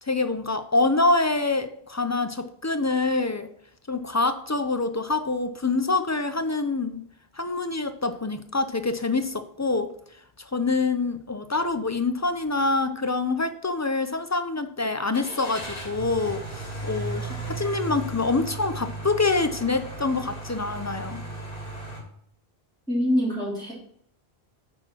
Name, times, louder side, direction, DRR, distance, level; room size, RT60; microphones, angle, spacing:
voice 1, 0.0-3.5 3.9-7.0 7.4-9.9 10.4-21.2, left 3 dB, 25° left, 10 dB, 0.4 m, -26 dB
Car / Engine starting, 15.1-22.0, right 2 dB, 55° left, 2.6 m, -35 dB
voice 2, 22.9-23.7, equal, 5° left, -7 dB, 3.3 m, -24 dB
9.0 x 4.4 x 6.1 m, 0.65 s
omnidirectional pair, 1.1 m